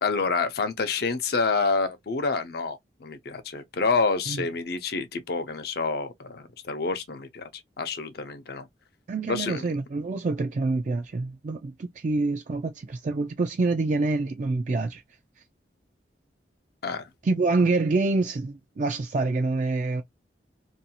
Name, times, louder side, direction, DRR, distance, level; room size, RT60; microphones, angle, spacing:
voice 1, 0.0-7.5 7.8-8.7 9.3-9.6 16.8-17.1, left 4 dB, 60° left, 0.6 m, -28 dB
voice 2, 9.1-15.0 17.2-20.0, right 3 dB, 45° right, 0.4 m, -26 dB
2.6 x 2.3 x 2.7 m
head